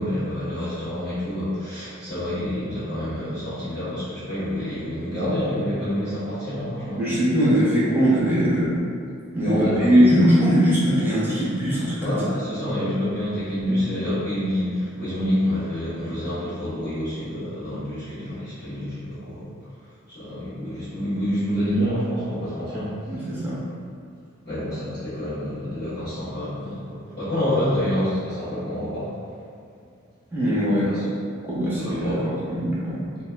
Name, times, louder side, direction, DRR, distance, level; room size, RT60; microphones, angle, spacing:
voice 1, 0.0-7.0 9.4-10.1 12.0-19.5 20.1-23.0 24.4-29.2 30.8-31.0 31.7-32.3 33.1-33.2, equal, 25° left, -20 dB, 1.3 m, -27 dB
voice 2, 7.0-8.7 9.3-12.2 23.1-23.6 30.3-30.9 31.5-33.0, equal, 10° right, -10 dB, 0.9 m, -21 dB
4.0 x 2.2 x 2.4 m, 2.4 s
head